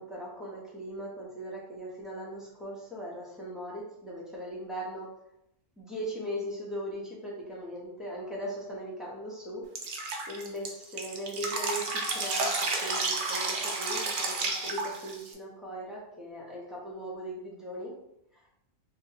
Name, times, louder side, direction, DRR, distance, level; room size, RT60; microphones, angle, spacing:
voice 1, 0.0-5.1 5.8-10.0 10.3-17.9, equal, ahead, -6 dB, 0.6 m, -39 dB
Drip, 9.8-15.3, right 3 dB, 60° right, 0.5 m, -31 dB
3.7 x 2.2 x 2.7 m, 0.80 s
omnidirectional pair, 1.3 m